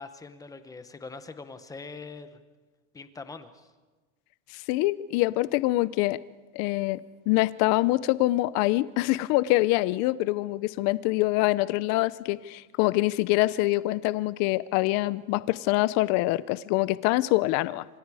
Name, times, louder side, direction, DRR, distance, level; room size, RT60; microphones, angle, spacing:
voice 1, 0.0-2.4 2.9-3.7, left 4 dB, 10° left, 10 dB, 0.8 m, -43 dB
voice 2, 4.5-6.2 6.5-7.0 7.3-17.8, left 18 dB, 45° left, 18 dB, 0.6 m, -25 dB
26.5 x 26.5 x 4.8 m, 1.3 s
cardioid pair, 165°, 38 cm